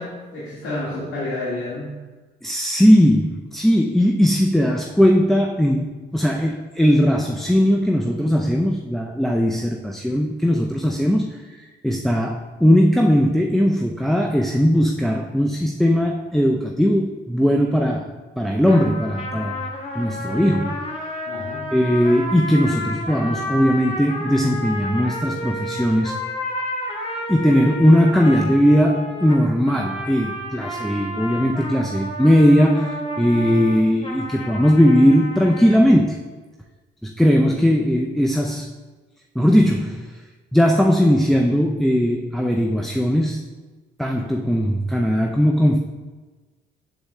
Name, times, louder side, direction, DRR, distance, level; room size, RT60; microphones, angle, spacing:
voice 1, 0.0-2.0 21.3-21.6, left 2 dB, 85° left, -7 dB, 1.7 m, -30 dB
voice 2, 2.4-19.6 19.9-20.9 21.7-26.2 27.3-36.2 37.0-38.7 39.4-40.1 40.5-43.4 44.0-45.8, equal, ahead, 1 dB, 0.4 m, -18 dB
sound 1, 18.7-35.8, left 1 dB, 30° left, 1.4 m, -31 dB
8.0 x 7.8 x 2.2 m, 1.3 s
cardioid pair, 90°, 20 cm